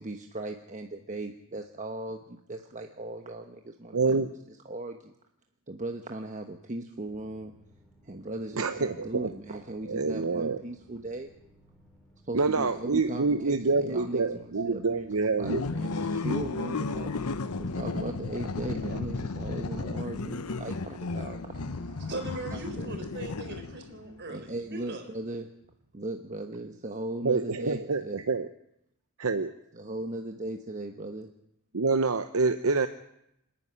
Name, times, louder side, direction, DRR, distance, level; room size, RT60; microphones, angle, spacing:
voice 1, 0.0-4.3 4.6-5.1 5.7-7.5 8.0-11.3 12.3-17.2 17.6-22.1 22.5-23.1 24.3-25.5 25.9-28.3 29.7-31.3, right 2 dB, 35° right, 4 dB, 1.1 m, -38 dB
voice 2, 3.9-4.3 8.6-9.3 9.9-10.6 12.3-15.6 27.2-28.5 29.2-29.5 31.7-32.9, right 4 dB, 70° right, 9 dB, 0.9 m, -27 dB
sound 1, 7.1-24.6, equal, 5° left, 5.1 m, -59 dB
sound 2, 15.4-24.0, left 3 dB, 80° left, 0.9 m, -33 dB
voice 3, 22.0-25.0, right 1 dB, 50° right, 5 dB, 4.0 m, -39 dB
27.0 x 9.9 x 9.8 m, 0.80 s
head